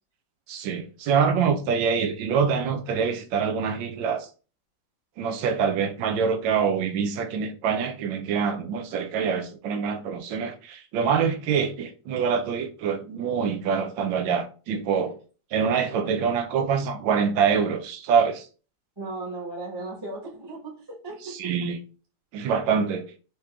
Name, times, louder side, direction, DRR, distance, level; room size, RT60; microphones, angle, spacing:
voice 1, 0.5-4.3 5.2-15.1 15.5-18.5 21.2-21.8 22.3-23.1, right 6 dB, 85° right, 1.4 m, -25 dB
voice 2, 19.0-21.7, right 2 dB, 15° right, 1.0 m, -36 dB
5.0 x 2.9 x 3.4 m
omnidirectional pair, 2.0 m